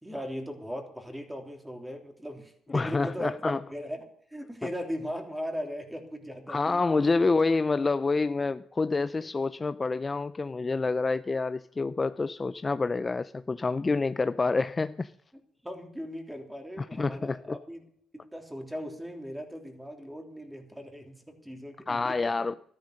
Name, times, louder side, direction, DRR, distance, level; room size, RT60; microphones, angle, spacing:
voice 1, 0.0-3.3 3.7-4.0 4.3-7.3 15.6-17.8 18.3-22.5, equal, 5° right, 3.3 m, -38 dB
voice 2, 2.7-3.6 6.5-15.1 16.8-17.6 21.9-22.5, left 3 dB, 25° left, 0.5 m, -27 dB
13.0 x 11.0 x 6.5 m
cardioid pair, 90°, 0 cm